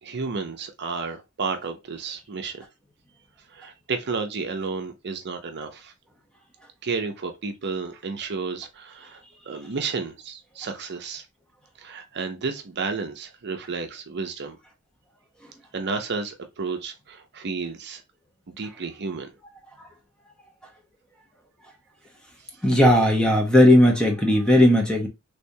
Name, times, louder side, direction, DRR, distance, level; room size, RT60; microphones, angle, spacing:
voice 1, 0.0-2.7 3.5-5.9 6.8-9.2 9.5-11.2 11.8-14.6 15.7-18.0 18.5-19.3, right 4 dB, 50° right, 0.7 m, -32 dB
voice 2, 22.6-25.1, left 1 dB, 5° left, 0.9 m, -17 dB
3.5 x 3.3 x 2.7 m
head